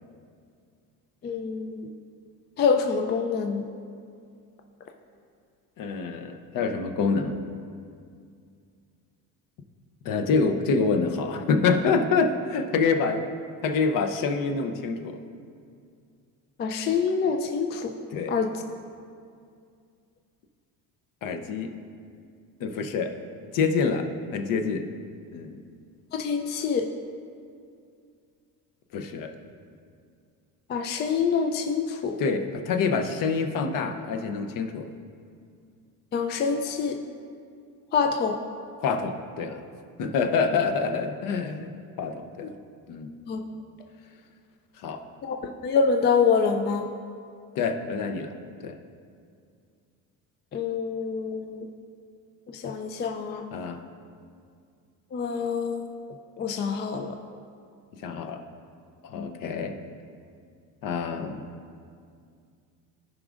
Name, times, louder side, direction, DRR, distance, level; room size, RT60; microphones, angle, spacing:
voice 1, 1.2-1.9 2.6-3.6 16.6-17.9 18.3-18.5 26.1-26.9 30.7-32.2 36.1-37.0 37.9-38.4 43.3-43.4 45.2-46.9 50.5-51.7 52.5-53.5 55.1-55.9 56.4-57.2 59.1-59.3, left 5 dB, 30° left, 5 dB, 0.4 m, -26 dB
voice 2, 5.8-7.4 10.0-13.3 13.6-15.2 18.1-18.4 21.2-21.8 22.6-23.1 23.5-24.9 25.3-25.6 28.9-29.3 32.2-34.9 38.8-39.6 40.0-41.7 42.0-42.5 42.9-43.1 44.8-45.0 47.6-48.3 48.6-48.8 53.5-53.8 58.0-58.4 59.0-59.8 60.8-61.4, left 4 dB, 55° left, 6 dB, 0.7 m, -26 dB
15.0 x 5.1 x 2.5 m, 2.3 s
cardioid pair, 120°, 39 cm